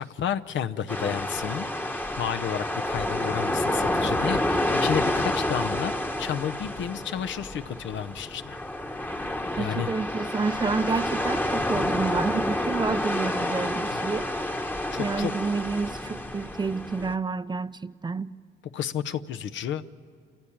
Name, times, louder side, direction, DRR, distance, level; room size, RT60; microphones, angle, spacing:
voice 1, 0.0-5.9 6.2-8.6 9.6-9.9 13.9-14.0 14.9-15.3 18.7-19.9, left 9 dB, 70° left, 0.8 m, -31 dB
sound 1, 0.9-17.1, left 1 dB, 10° left, 1.1 m, -29 dB
voice 2, 9.5-14.3 15.0-18.3, right 4 dB, 20° right, 0.5 m, -29 dB
28.0 x 15.0 x 8.7 m
cardioid pair, 90°, 20 cm